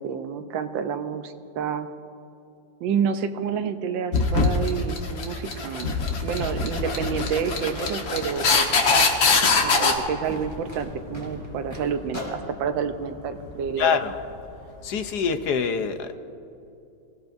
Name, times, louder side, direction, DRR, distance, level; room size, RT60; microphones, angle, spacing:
voice 1, 0.0-1.9 2.8-8.7 9.6-14.0, right 7 dB, 90° right, 9 dB, 1.5 m, -29 dB
sound 1, 4.1-9.9, left 4 dB, 85° left, 2.1 m, -22 dB
sound 2, 6.7-15.5, left 1 dB, 15° left, 4.2 m, -40 dB
voice 2, 13.8-14.2 14.8-16.2, left 6 dB, 65° left, 8 dB, 1.2 m, -25 dB
25.0 x 17.5 x 2.6 m, 2.7 s
omnidirectional pair, 2.0 m